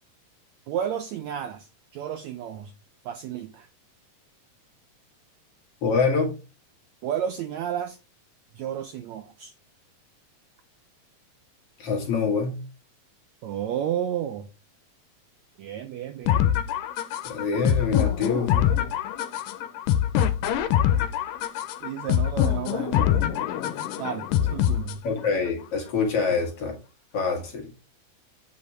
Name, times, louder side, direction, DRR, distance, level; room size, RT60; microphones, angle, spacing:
voice 1, 0.7-1.7 1.9-2.7 3.0-3.7 7.0-8.0 8.5-9.5 13.4-14.5 15.6-16.5 21.8-23.1 24.0-25.0, right 9 dB, 85° right, 1.6 m, -32 dB
voice 2, 5.8-6.3 11.8-12.6 17.2-18.8 25.0-26.8 27.1-27.7, left 4 dB, 50° left, 2.5 m, -25 dB
sound 1, 16.3-25.3, left 10 dB, 90° left, 2.4 m, -24 dB
8.5 x 5.5 x 3.2 m
omnidirectional pair, 4.0 m